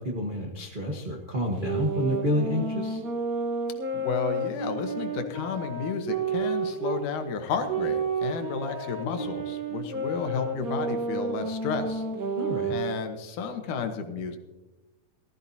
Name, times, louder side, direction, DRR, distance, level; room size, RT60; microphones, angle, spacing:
voice 1, 0.0-3.0 12.4-12.8, equal, 90° right, -1 dB, 0.4 m, -29 dB
sound 1, 1.6-7.0 7.7-13.0, right 3 dB, 45° right, 1.3 m, -31 dB
voice 2, 3.9-12.1 12.7-14.4, left 5 dB, 90° left, 6 dB, 2.7 m, -32 dB
18.5 x 14.0 x 2.8 m, 1.1 s
omnidirectional pair, 3.5 m